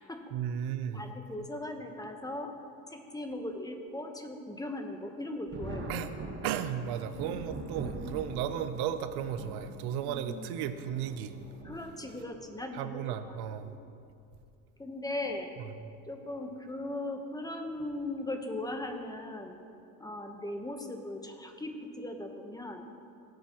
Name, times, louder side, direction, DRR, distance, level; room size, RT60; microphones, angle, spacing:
voice 1, 0.3-1.1 5.9-6.1 6.4-11.3 12.7-13.7, right 9 dB, 75° right, 11 dB, 0.8 m, -34 dB
voice 2, 0.9-2.5 2.9-6.0 8.4-8.6 10.0-10.6 11.6-13.4 13.6-13.8 14.8-15.5 16.1-19.6 20.0-22.9, left 1 dB, 10° left, 4 dB, 1.0 m, -39 dB
Thunder, 5.5-12.5 13.5-13.6 15.1-15.4 15.7-15.8 17.8-18.0 18.7-19.0, right 2 dB, 30° right, 1.6 m, -43 dB
17.0 x 8.0 x 3.0 m, 2.5 s
cardioid pair, 105°, 39 cm